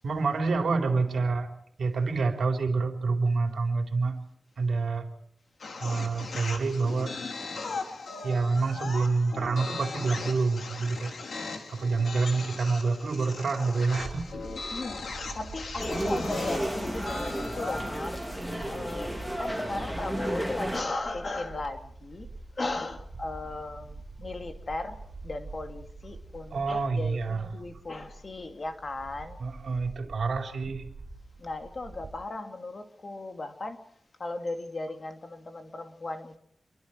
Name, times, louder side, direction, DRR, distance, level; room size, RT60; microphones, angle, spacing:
voice 1, 0.0-1.5 1.8-4.2 4.6-5.1 5.8-7.2 8.2-11.1 11.7-14.3 26.5-27.6 29.4-30.9, right 4 dB, 75° right, 4 dB, 4.0 m, -27 dB
sound 1, 5.6-17.9, left 4 dB, 70° left, 3.9 m, -38 dB
Bird / Wind, 14.0-32.2, right 3 dB, 50° right, 7.6 m, -46 dB
voice 2, 14.7-18.2 18.7-22.3 22.6-29.4 31.4-33.8 34.2-36.4, left 2 dB, 40° left, 6 dB, 2.4 m, -37 dB
sound 2, 15.8-20.8, equal, 5° left, 3.3 m, -32 dB
27.5 x 23.5 x 4.6 m, 0.68 s
wide cardioid pair, 145°, 0 cm